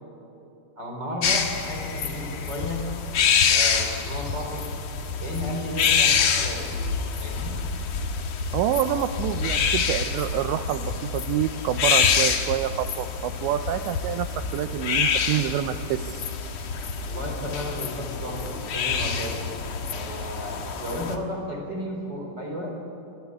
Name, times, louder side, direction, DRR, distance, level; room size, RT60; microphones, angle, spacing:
voice 1, 0.8-2.8 3.5-4.7 5.2-6.9 7.2-7.6 8.7-9.0 17.1-19.4 19.8-22.7, left 1 dB, 25° right, 1 dB, 3.4 m, -33 dB
sound 1, 1.2-21.2, left 6 dB, 90° left, 1.5 m, -26 dB
voice 2, 8.5-16.3, right 11 dB, 90° right, 9 dB, 2.5 m, -27 dB
25.0 x 22.0 x 9.6 m, 3.0 s
omnidirectional pair, 6.0 m